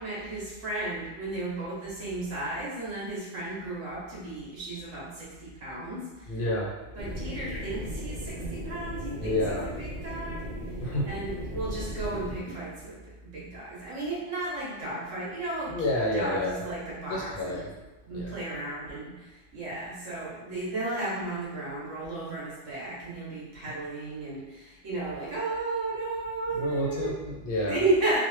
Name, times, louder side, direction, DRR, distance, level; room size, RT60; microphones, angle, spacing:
voice 1, 0.0-6.4 7.0-10.5 11.1-15.8 16.1-17.7 18.0-27.2 27.7-28.2, right 2 dB, 75° right, -7 dB, 1.3 m, -34 dB
voice 2, 6.3-6.7 9.2-9.7 10.8-11.1 15.7-16.6 17.1-17.7 18.1-18.3 26.5-27.8, left 1 dB, 55° left, -4 dB, 0.6 m, -29 dB
sound 1, 7.0-12.4, equal, 35° right, 0.9 m, -36 dB
3.1 x 2.0 x 3.1 m, 1.2 s
omnidirectional pair, 1.3 m